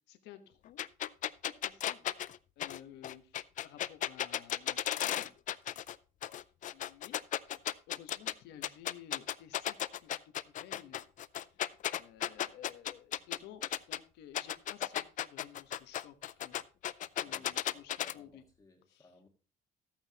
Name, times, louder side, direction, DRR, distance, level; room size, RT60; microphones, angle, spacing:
voice 1, 0.1-0.9 1.4-2.2 2.6-5.3 6.7-7.2 7.9-10.1 10.5-11.0 11.5-16.6 17.2-18.4 18.9-19.1, left 11 dB, 85° left, 9 dB, 1.2 m, -54 dB
sound 1, 0.8-5.9 6.2-8.3 8.6-14.0 14.3-18.1, left 12 dB, 50° left, 0.4 m, -35 dB
voice 2, 17.2-19.3, left 2 dB, 20° left, 1 dB, 1.5 m, -62 dB
13.5 x 8.9 x 2.9 m, 0.36 s
cardioid pair, 110°, 17 cm